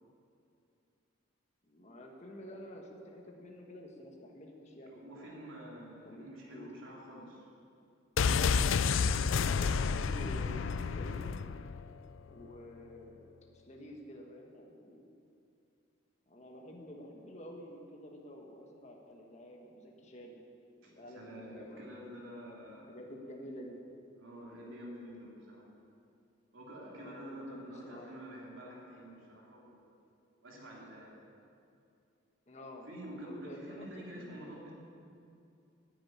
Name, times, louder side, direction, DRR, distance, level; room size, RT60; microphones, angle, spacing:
voice 1, 1.6-5.5 6.0-6.7 9.3-11.3 12.3-13.3 13.6-15.1 16.3-20.4 20.8-21.9 22.9-23.8 26.8-28.2 32.5-34.7, equal, 35° left, 0 dB, 1.4 m, -49 dB
voice 2, 4.9-7.4 8.3-8.9 20.8-22.9 24.2-25.6 26.5-30.0 30.4-31.1 32.9-34.7, equal, 85° right, -4 dB, 3.2 m, -48 dB
sound 1, 8.2-11.9 12.2-12.3, left 5 dB, 80° left, 0.4 m, -30 dB
10.0 x 9.3 x 9.7 m, 2.5 s
head